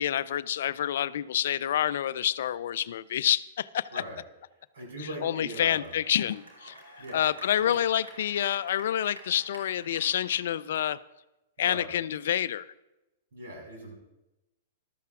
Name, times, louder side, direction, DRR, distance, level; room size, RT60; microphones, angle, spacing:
voice 1, 0.0-4.0 5.2-6.8 7.1-11.0 11.6-12.7, left 10 dB, 65° left, 17 dB, 0.3 m, -28 dB
voice 2, 4.7-5.9 7.0-7.2 7.6-7.7 11.6-11.9 13.3-14.0, right 1 dB, 70° right, 0 dB, 4.9 m, -40 dB
sound 1, 5.5-10.4, right 2 dB, 85° right, 2.7 m, -50 dB
14.5 x 12.5 x 2.4 m, 0.97 s
hypercardioid pair, 115°, 0 cm